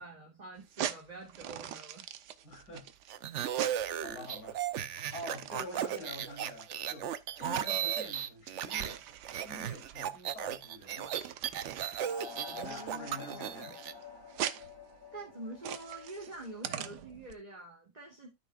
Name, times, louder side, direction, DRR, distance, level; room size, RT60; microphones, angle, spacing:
voice 1, 0.0-2.1 7.4-7.6 12.5-13.7 15.1-18.3, right 2 dB, 25° right, 2.3 m, -46 dB
sound 1, 0.6-17.3, right 10 dB, 85° right, 1.4 m, -43 dB
voice 2, 2.4-2.9 3.4-4.6 5.1-9.1 9.4-11.2 12.6-13.7, left 1 dB, 75° left, 4.7 m, -47 dB
sound 2, 3.1-8.9 9.2-13.9, right 10 dB, 60° right, 0.8 m, -36 dB
sound 3, 12.0-17.0, left 5 dB, 15° left, 2.1 m, -48 dB
13.5 x 6.1 x 2.4 m
omnidirectional pair, 1.7 m